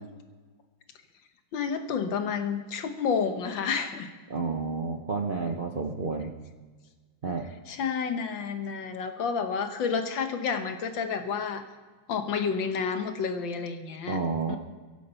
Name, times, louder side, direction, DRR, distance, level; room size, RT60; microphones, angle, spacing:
voice 1, 1.5-4.1 7.7-11.6 12.1-14.2 14.5-14.6, left 6 dB, 70° left, 7 dB, 1.8 m, -30 dB
voice 2, 4.3-6.3 7.2-7.5 14.1-14.6, right 4 dB, 45° right, 2 dB, 0.6 m, -30 dB
22.5 x 8.3 x 5.6 m, 1.4 s
omnidirectional pair, 2.2 m